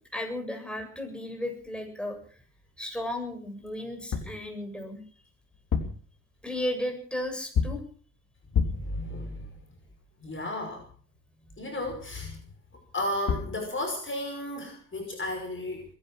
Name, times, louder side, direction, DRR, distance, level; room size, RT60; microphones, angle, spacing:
voice 1, 0.1-2.2 2.8-5.0 6.4-7.8, left 1 dB, ahead, 3 dB, 7.7 m, -34 dB
sound 1, 3.9-4.4 5.5-6.1 7.5-7.9 8.5-9.0 13.0-13.1 13.3-13.6, left 6 dB, 50° left, 3.7 m, -28 dB
voice 2, 8.6-9.5 10.2-10.9 11.6-12.4 12.9-15.9, left 1 dB, 30° left, 3 dB, 5.7 m, -34 dB
21.5 x 11.0 x 6.2 m, 0.43 s
supercardioid pair, 65°, 41 cm